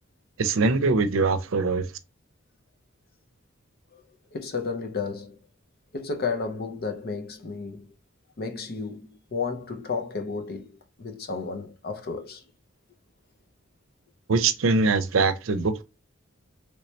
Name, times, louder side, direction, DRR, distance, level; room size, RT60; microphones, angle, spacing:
voice 1, 0.4-1.9 14.3-15.8, right 3 dB, 80° right, 0.6 m, -22 dB
voice 2, 4.3-5.4 5.9-7.9 8.4-12.4, left 4 dB, 50° left, 0.7 m, -32 dB
3.3 x 3.2 x 2.7 m
head